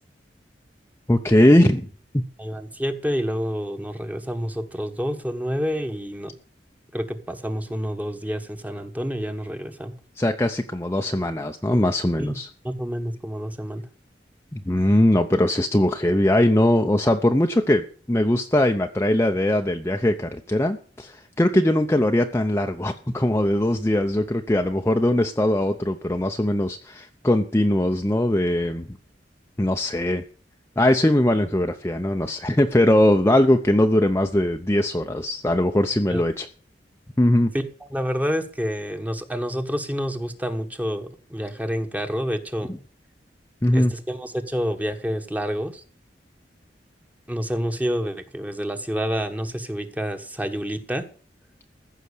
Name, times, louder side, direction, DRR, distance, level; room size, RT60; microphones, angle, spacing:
voice 1, 1.1-1.9 2.1-2.2 10.2-12.5 14.5-28.9 29.6-30.2 30.8-36.5 37.2-37.5 43.6-43.9, left 1 dB, 15° left, 4 dB, 0.7 m, -20 dB
voice 2, 2.4-6.3 6.9-9.9 12.2-12.4 12.6-13.8 36.1-36.2 37.5-37.6 37.9-42.7 43.7-45.8 47.3-51.1, equal, 10° right, 7 dB, 1.3 m, -28 dB
15.0 x 6.0 x 8.3 m, 0.41 s
head